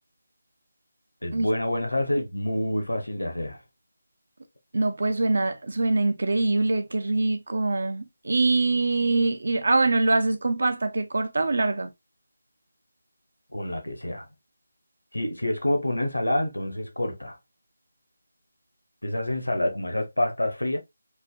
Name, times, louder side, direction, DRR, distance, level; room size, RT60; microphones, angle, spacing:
voice 1, 1.2-3.6 13.5-14.3 15.1-17.4 19.0-20.8, left 1 dB, 75° left, 0.8 m, -27 dB
voice 2, 4.7-11.9, right 3 dB, 55° right, 0.4 m, -24 dB
3.2 x 2.1 x 2.3 m
figure-of-eight pair, 155°, 0 cm